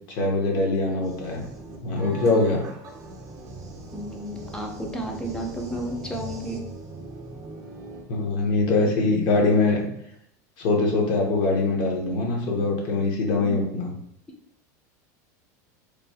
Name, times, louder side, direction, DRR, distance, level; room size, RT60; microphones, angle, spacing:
voice 1, 0.1-1.4 1.8-2.6 8.1-9.8 10.6-13.9, left 3 dB, 55° left, 0 dB, 0.9 m, -23 dB
sound 1, 1.0-8.0, right 2 dB, 40° right, 0.6 m, -40 dB
voice 2, 3.9-6.6 13.4-13.6, right 1 dB, 10° left, 1 dB, 0.5 m, -32 dB
3.1 x 2.1 x 2.7 m, 0.75 s
supercardioid pair, 120°, 9 cm